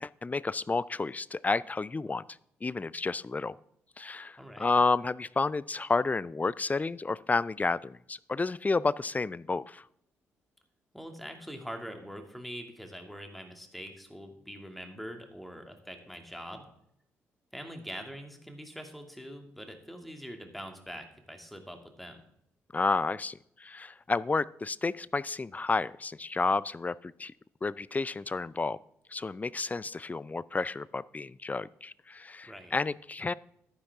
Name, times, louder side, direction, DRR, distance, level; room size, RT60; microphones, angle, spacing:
voice 1, 0.0-2.2 2.6-3.5 4.0-9.8 22.7-27.3 27.6-28.8 29.1-33.3, left 3 dB, 25° left, 20 dB, 0.4 m, -31 dB
voice 2, 4.4-4.8 10.9-16.7 17.5-22.2 32.4-32.7, equal, ahead, 4 dB, 2.4 m, -43 dB
11.5 x 9.8 x 3.6 m, 0.72 s
hypercardioid pair, 40°, 7 cm